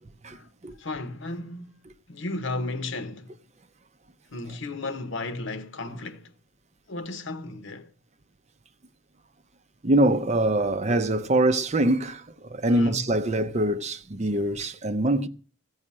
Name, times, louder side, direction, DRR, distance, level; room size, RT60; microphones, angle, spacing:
voice 1, 0.8-1.8 2.1-3.4 4.3-6.3 6.9-7.9 12.7-13.1, left 2 dB, 60° left, 1.0 m, -34 dB
voice 2, 9.8-12.2 12.5-15.3, right 1 dB, 30° right, 0.7 m, -23 dB
15.0 x 5.7 x 8.7 m
head